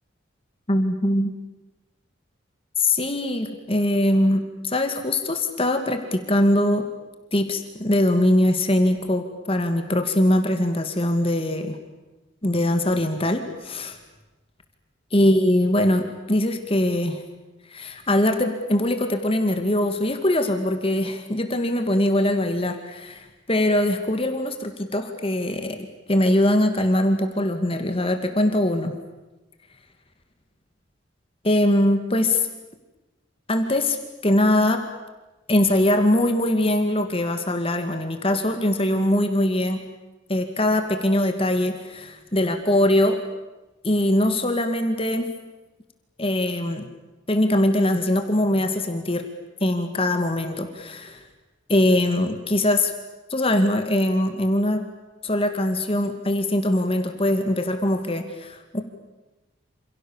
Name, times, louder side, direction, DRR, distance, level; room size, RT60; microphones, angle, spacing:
voice 1, 0.7-1.3 2.8-6.9 7.3-11.8 12.4-14.0 15.1-17.2 17.7-25.8 26.1-28.9 31.4-32.5 33.5-34.0 34.2-34.8 35.5-39.8 40.3-43.2 43.8-45.3 46.2-46.9 47.3-49.3 49.6-51.2 51.7-52.9 53.3-54.8 55.2-58.8, left 1 dB, 30° left, 6 dB, 2.2 m, -22 dB
28.5 x 28.0 x 7.3 m, 1.1 s
head